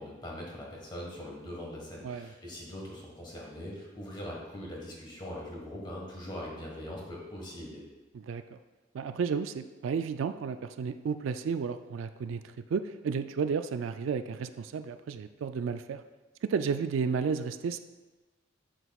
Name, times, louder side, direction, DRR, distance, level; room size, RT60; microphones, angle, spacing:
voice 1, 0.0-7.8, left 1 dB, 20° left, -2 dB, 1.4 m, -41 dB
voice 2, 8.1-8.6 8.9-16.0 16.4-17.8, right 6 dB, 70° right, 10 dB, 0.3 m, -32 dB
7.9 x 7.8 x 2.3 m, 1.2 s
head